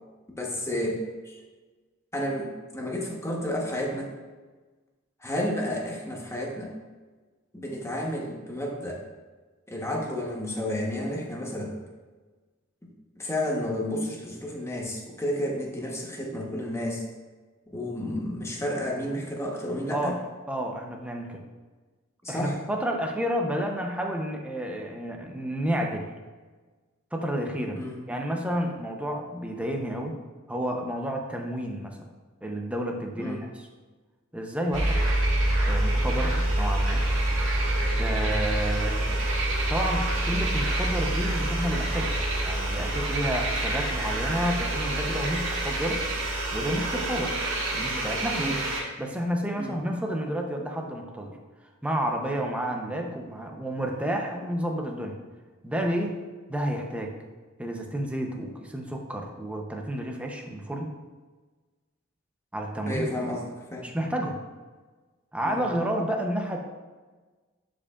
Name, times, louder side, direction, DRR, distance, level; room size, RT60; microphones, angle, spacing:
voice 1, 0.4-1.4 2.1-2.5 2.7-4.1 5.2-6.7 7.5-9.0 9.7-11.7 13.2-17.0 17.7-20.2 22.2-22.6 27.7-28.0 33.2-33.4 48.4-48.6 49.6-49.8 62.9-63.9 65.4-65.6, left 1 dB, 15° left, -1 dB, 1.1 m, -31 dB
voice 2, 20.5-21.4 22.3-26.1 27.1-27.8 28.1-30.2 30.5-32.0 32.4-33.5 34.3-35.0 35.6-37.0 38.0-39.3 39.7-42.1 42.5-46.0 46.5-47.4 47.7-48.5 49.0-51.4 51.8-55.2 55.6-56.2 56.5-57.1 57.6-60.9 62.5-63.0 63.8-64.4 65.3-66.6, equal, 5° right, 1 dB, 0.7 m, -30 dB
sound 1, 34.7-48.8, right 1 dB, 70° right, 1.8 m, -26 dB
11.5 x 5.1 x 2.4 m, 1.3 s
head